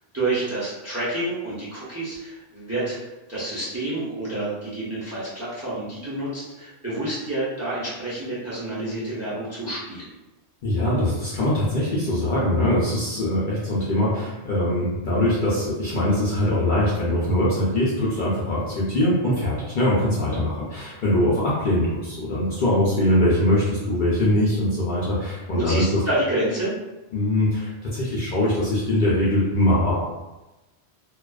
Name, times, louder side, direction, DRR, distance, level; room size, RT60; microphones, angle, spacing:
voice 1, 0.1-3.0 3.3-10.1 25.5-26.7, right 2 dB, 15° right, -9 dB, 0.6 m, -28 dB
voice 2, 10.6-26.0 27.1-30.0, left 1 dB, 55° left, -7 dB, 0.6 m, -22 dB
2.4 x 2.3 x 2.3 m, 1.1 s
omnidirectional pair, 1.2 m